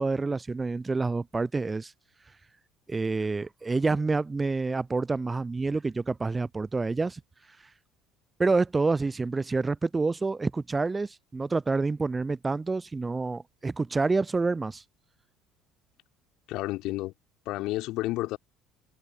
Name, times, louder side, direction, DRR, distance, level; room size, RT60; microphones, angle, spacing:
voice 1, 0.0-1.9 2.9-7.2 7.6-7.7 8.4-14.8, right 3 dB, 20° right, 0.4 m, -28 dB
voice 2, 16.5-17.1 17.5-18.4, left 18 dB, 60° left, 3.8 m, -30 dB
figure-of-eight pair, 60°, 0 cm